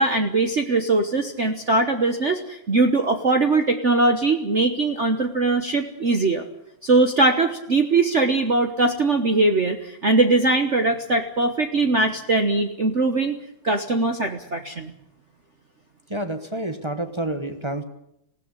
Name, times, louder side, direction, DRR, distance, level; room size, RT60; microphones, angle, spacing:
voice 1, 0.0-6.5 6.8-13.3 13.6-14.9, right 3 dB, 40° right, 5 dB, 1.3 m, -21 dB
voice 2, 16.1-17.8, right 1 dB, 15° right, 8 dB, 1.2 m, -28 dB
19.5 x 16.5 x 9.9 m, 0.78 s
omnidirectional pair, 2.3 m